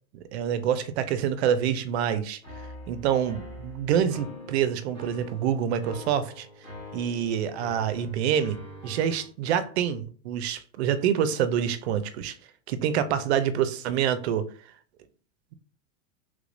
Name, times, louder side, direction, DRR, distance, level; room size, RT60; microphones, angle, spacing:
voice 1, 0.1-2.4 2.9-6.5 6.9-8.6 8.8-12.4 12.7-14.5, right 9 dB, 60° right, 0.5 m, -26 dB
sound 1, 2.4-9.3, left 1 dB, 15° left, 1.2 m, -44 dB
3.3 x 3.2 x 2.5 m
supercardioid pair, 180°, 37 cm